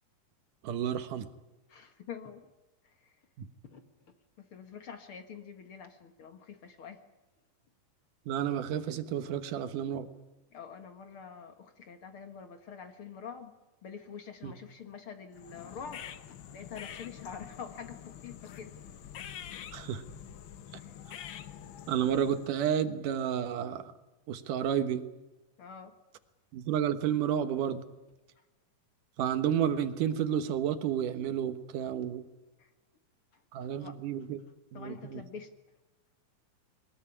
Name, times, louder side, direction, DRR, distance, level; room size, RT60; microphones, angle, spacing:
voice 1, 0.6-1.3 8.3-10.1 14.4-14.5 19.7-20.0 21.9-23.9 24.3-25.0 26.5-27.8 29.2-32.3 33.5-34.4 34.7-35.2, right 9 dB, 85° right, 12 dB, 2.8 m, -31 dB
voice 2, 1.7-2.5 2.8-3.1 3.7-3.8 4.4-7.0 10.5-13.5 13.8-18.7 20.8-20.9 25.6-25.9 32.6-32.7 33.6-34.0 34.7-35.5, left 6 dB, 50° left, 8 dB, 2.0 m, -46 dB
sound 1, 15.3-22.6, left 10 dB, 70° left, 1.2 m, -46 dB
22.0 x 20.5 x 9.9 m, 1.1 s
omnidirectional pair, 3.6 m